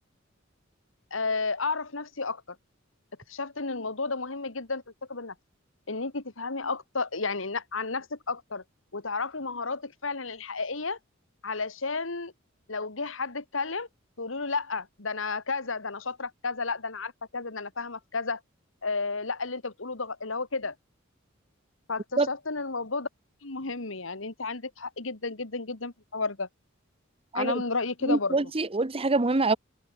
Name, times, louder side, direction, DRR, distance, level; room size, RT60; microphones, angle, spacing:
voice 1, 1.1-2.4 3.3-4.8 5.1-5.3 5.9-8.6 8.9-11.0 11.4-12.3 12.7-13.9 14.2-18.4 18.8-20.7 21.9-23.1 23.4-26.5 27.3-28.4, left 4 dB, 75° left, 2.1 m, -32 dB
voice 2, 28.0-29.6, right 3 dB, 30° right, 0.9 m, -25 dB
head